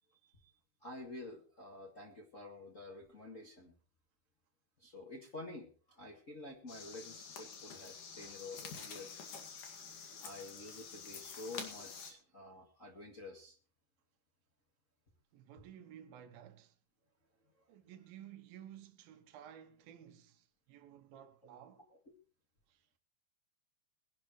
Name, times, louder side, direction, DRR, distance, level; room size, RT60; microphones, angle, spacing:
voice 1, 0.1-0.5 0.8-3.7 4.8-9.2 10.2-13.6, left 2 dB, 30° left, 1.4 m, -49 dB
sound 1, 6.7-12.1, left 5 dB, 60° left, 3.5 m, -48 dB
voice 2, 15.3-16.8 17.7-21.9 22.7-22.9, right 10 dB, 75° right, 2.8 m, -55 dB
21.5 x 11.0 x 3.2 m
omnidirectional pair, 4.3 m